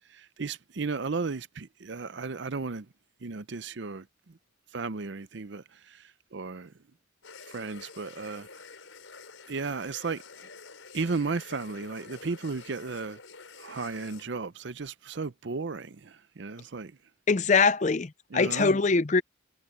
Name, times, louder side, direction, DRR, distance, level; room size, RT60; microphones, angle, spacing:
voice 1, 0.1-2.9 3.2-4.3 4.7-6.0 6.3-6.7 7.5-8.5 9.5-10.2 10.9-13.2 13.6-16.9 18.3-18.7, right 4 dB, 60° right, 0.6 m, -34 dB
sound 1, 7.2-14.2, left 4 dB, 75° left, 4.5 m, -48 dB
voice 2, 17.3-19.2, left 4 dB, 35° left, 0.5 m, -23 dB
head